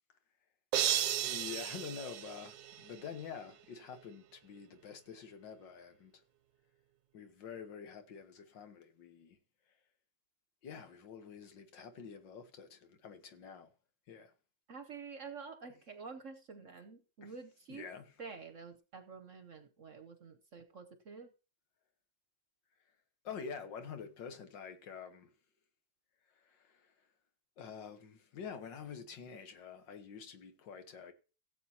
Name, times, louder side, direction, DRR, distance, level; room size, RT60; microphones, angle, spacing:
sound 1, 0.7-3.1, right 11 dB, 90° right, 1.5 m, -34 dB
voice 1, 1.2-6.1 7.1-9.4 10.6-13.7 14.1-14.3 17.2-17.3 17.7-18.1 23.2-25.3 26.4-26.9 27.6-31.1, left 6 dB, 75° left, 1.9 m, -47 dB
voice 2, 14.7-17.9 18.2-21.3, right 5 dB, 55° right, 1.0 m, -49 dB
16.5 x 7.9 x 2.9 m
omnidirectional pair, 2.0 m